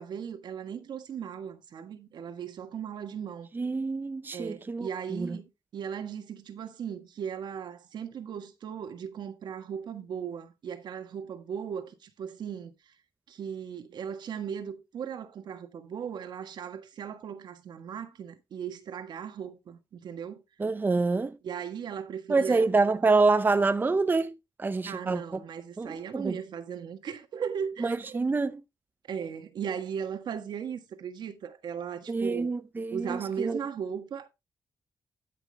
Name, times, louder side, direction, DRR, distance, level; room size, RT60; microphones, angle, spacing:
voice 1, 0.0-3.5 4.3-12.7 13.3-20.4 21.4-22.6 24.8-28.2 29.1-32.5 32.9-34.3, right 7 dB, 75° right, 1.5 m, -37 dB
voice 2, 3.5-5.4 20.6-21.4 22.3-25.4 25.8-26.4 27.8-28.6 32.1-33.6, right 3 dB, 25° right, 0.7 m, -27 dB
12.5 x 6.0 x 3.4 m
cardioid pair, 105°, 8 cm